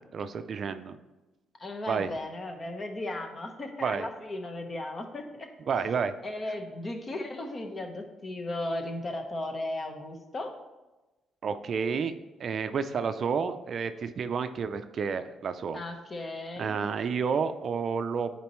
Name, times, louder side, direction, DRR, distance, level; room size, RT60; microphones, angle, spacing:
voice 1, 0.1-1.0 1.9-2.1 3.8-4.1 5.7-6.1 11.4-12.1 12.4-15.8 16.6-18.4, right 6 dB, 55° right, 10 dB, 0.4 m, -30 dB
voice 2, 1.6-5.5 6.2-10.5 15.7-16.8, left 1 dB, 35° left, 4 dB, 1.0 m, -36 dB
10.0 x 4.4 x 3.1 m, 1.1 s
cardioid pair, 90°, 0 cm